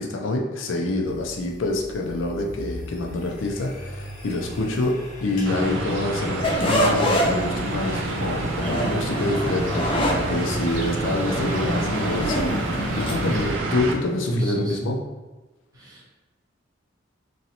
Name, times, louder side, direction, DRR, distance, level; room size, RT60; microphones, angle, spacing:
voice 1, 0.0-5.0 5.2-15.0, left 2 dB, 80° left, 1 dB, 0.5 m, -27 dB
sound 1, 1.1-13.5, equal, 40° left, 1.0 m, -37 dB
sound 2, 5.4-13.9, right 3 dB, 85° right, 0.5 m, -29 dB
sound 3, 6.4-13.3, equal, 25° left, 0.4 m, -26 dB
voice 2, 14.3-14.8 15.7-16.2, right 1 dB, 20° right, -7 dB, 0.6 m, -28 dB
3.0 x 2.8 x 2.6 m, 1.2 s
head